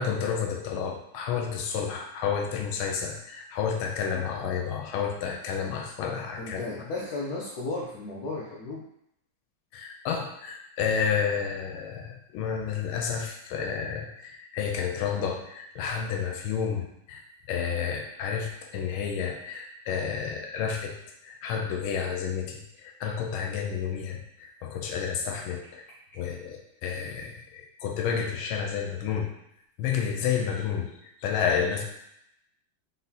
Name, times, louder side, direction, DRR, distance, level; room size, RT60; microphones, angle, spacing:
voice 1, 0.0-6.8 9.7-17.2 17.5-21.0 21.2-25.9 26.1-29.3 29.8-31.8, left 7 dB, 90° left, 2 dB, 1.4 m, -30 dB
voice 2, 6.1-8.9, left 2 dB, 70° left, -3 dB, 0.9 m, -35 dB
4.1 x 3.9 x 2.7 m, 0.78 s
omnidirectional pair, 2.2 m